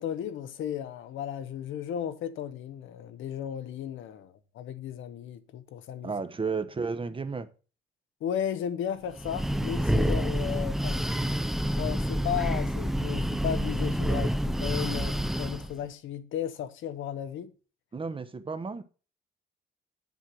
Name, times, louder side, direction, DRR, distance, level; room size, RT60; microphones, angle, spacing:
voice 1, 0.0-6.1 8.2-11.0 11.8-17.5, left 9 dB, 80° left, 0.9 m, -35 dB
voice 2, 6.0-7.5 17.9-18.8, right 4 dB, 25° right, 0.9 m, -33 dB
Breathing, 9.1-15.7, equal, ahead, 0.4 m, -28 dB
7.2 x 5.7 x 6.1 m
cardioid pair, 90°, 20 cm